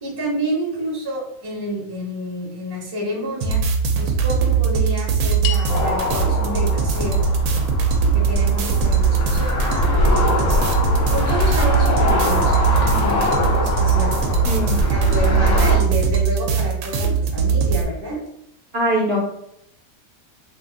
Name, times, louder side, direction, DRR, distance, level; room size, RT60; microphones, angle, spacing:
voice 1, 0.0-3.6 4.0-7.3 8.1-10.6 11.1-14.2 14.8-18.2, right 1 dB, 25° right, -2 dB, 0.6 m, -29 dB
sound 1, 3.4-17.8, right 6 dB, 75° right, 1.0 m, -20 dB
sound 2, 5.4-9.9, left 9 dB, 85° left, 1.1 m, -37 dB
sound 3, 5.7-15.8, left 2 dB, 65° left, 1.2 m, -22 dB
voice 2, 14.5-14.8 18.1-18.2 18.7-19.2, right 1 dB, 55° right, -5 dB, 0.7 m, -22 dB
2.7 x 2.5 x 3.7 m, 0.75 s
omnidirectional pair, 1.6 m